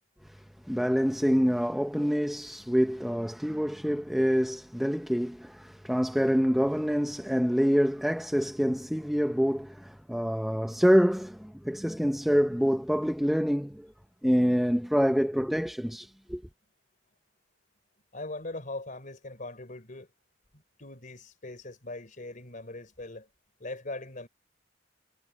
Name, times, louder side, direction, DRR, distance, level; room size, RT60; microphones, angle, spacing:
voice 1, 0.3-13.9 14.2-16.4, equal, ahead, 0.6 m, -26 dB
voice 2, 18.1-20.1 20.8-23.3 23.6-24.3, left 2 dB, 45° left, 4.2 m, -40 dB
head